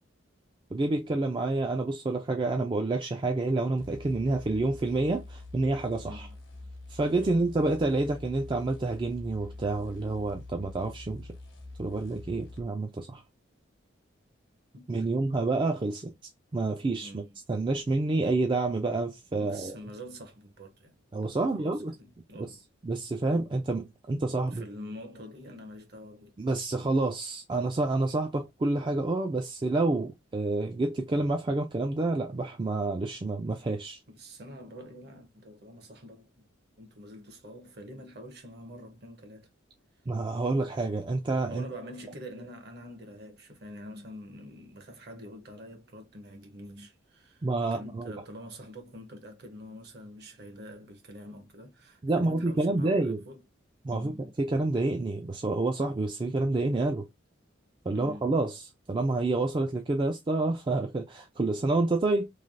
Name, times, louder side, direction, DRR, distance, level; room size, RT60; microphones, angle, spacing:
voice 1, 0.7-6.3 6.9-11.3 11.8-13.2 14.9-16.1 16.5-19.8 21.1-21.9 22.8-24.6 26.4-34.0 40.1-41.6 47.4-48.1 52.0-53.2 53.8-57.1 57.9-62.3, right 2 dB, 25° right, 0.3 m, -28 dB
sound 1, 3.8-12.7, left 2 dB, 75° left, 1.1 m, -45 dB
voice 2, 6.0-6.4 7.2-7.5 14.7-15.0 17.0-17.4 19.4-20.9 21.4-22.6 24.5-26.3 34.1-36.3 36.8-39.5 41.5-53.4 53.9-54.3 57.9-58.4, equal, 55° right, 0.9 m, -46 dB
3.2 x 2.3 x 2.5 m
head